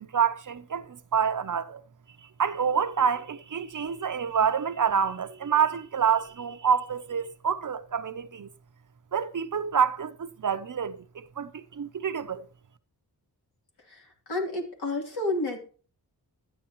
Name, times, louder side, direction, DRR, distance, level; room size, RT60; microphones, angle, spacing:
voice 1, 0.0-1.8 2.4-8.5 9.1-12.4, right 7 dB, 50° right, 0.7 m, -27 dB
voice 2, 13.9-15.6, left 2 dB, 75° left, 3.4 m, -30 dB
13.0 x 9.6 x 3.0 m
wide cardioid pair, 110°, 39 cm